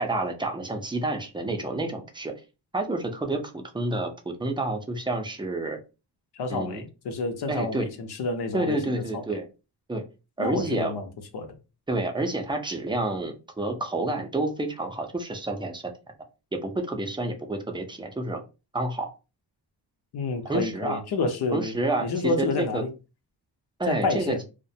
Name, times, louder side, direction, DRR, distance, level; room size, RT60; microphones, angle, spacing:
voice 1, 0.0-2.3 2.7-5.8 6.5-6.8 7.5-7.9 8.5-9.5 9.9-10.0 10.4-10.9 11.9-15.9 16.5-18.4 18.7-19.1 20.4-21.0 21.5-22.1 22.4-22.8 23.8-24.3, right 2 dB, 10° right, 0.4 m, -29 dB
voice 2, 6.3-9.2 10.4-11.1 11.3-11.5 20.1-21.8 22.0-22.9 23.9-24.4, left 3 dB, 65° left, 0.7 m, -29 dB
2.4 x 2.1 x 2.7 m
cardioid pair, 110°, 41 cm